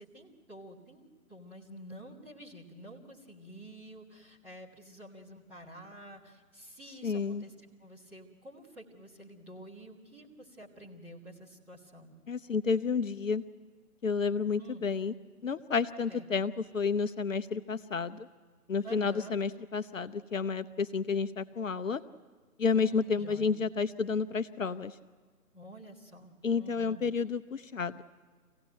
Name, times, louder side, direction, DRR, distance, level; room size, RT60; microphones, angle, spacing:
voice 1, 0.0-7.5 7.8-12.1 14.6-14.8 16.1-16.2 18.8-19.4 22.7-23.5 25.5-27.0, right 1 dB, 5° right, -8 dB, 1.5 m, -50 dB
voice 2, 7.0-7.4 12.3-13.4 14.0-15.1 15.4-18.3 18.7-22.0 22.6-25.0 26.4-28.0, left 5 dB, 60° left, 11 dB, 0.7 m, -31 dB
25.0 x 17.0 x 9.1 m, 1.5 s
figure-of-eight pair, 145°, 45 cm